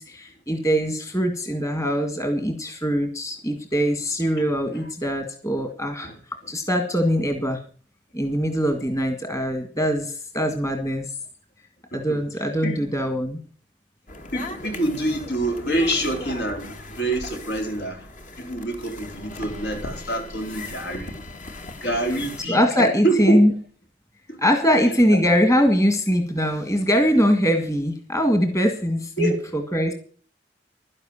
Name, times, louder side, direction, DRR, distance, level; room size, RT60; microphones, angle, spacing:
voice 1, 0.0-6.1 6.5-7.6 8.1-11.1 11.9-13.4 22.5-23.5 24.4-29.3 29.7-29.9, equal, 20° left, 1.9 m, -22 dB
sound 1, 14.1-22.4, left 2 dB, 45° left, 2.0 m, -38 dB
voice 2, 14.3-18.1 18.4-21.2 21.8-23.4 24.3-24.4 25.1-25.2 29.2-29.5, right 1 dB, 70° left, 4.1 m, -26 dB
12.0 x 11.0 x 7.2 m
head